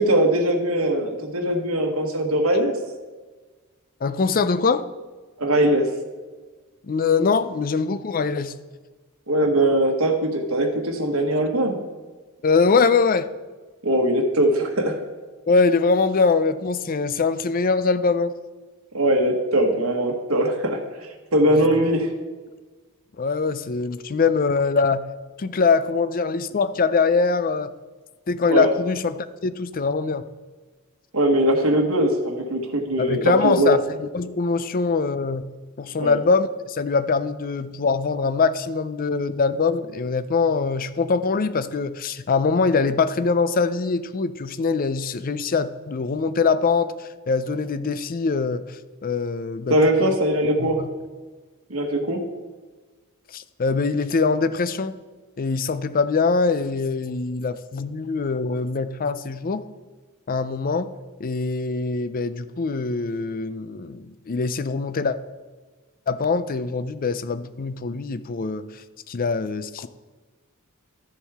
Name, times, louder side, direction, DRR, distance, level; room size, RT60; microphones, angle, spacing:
voice 1, 0.0-2.7 5.4-5.9 9.3-11.8 13.8-15.0 18.9-22.1 28.5-28.7 31.1-33.8 36.0-36.2 49.7-50.8 51.7-52.2, right 1 dB, 75° right, 2 dB, 1.4 m, -21 dB
voice 2, 4.0-4.9 6.9-8.5 12.4-13.3 15.5-18.3 21.5-21.8 23.2-25.1 25.4-27.7 28.3-30.2 33.0-35.5 35.8-50.2 50.6-50.9 53.3-54.9 55.4-59.7 60.3-60.9 61.2-65.2 66.1-68.7 69.1-69.9, left 4 dB, 40° left, 13 dB, 0.5 m, -23 dB
13.0 x 7.1 x 3.5 m, 1.3 s
head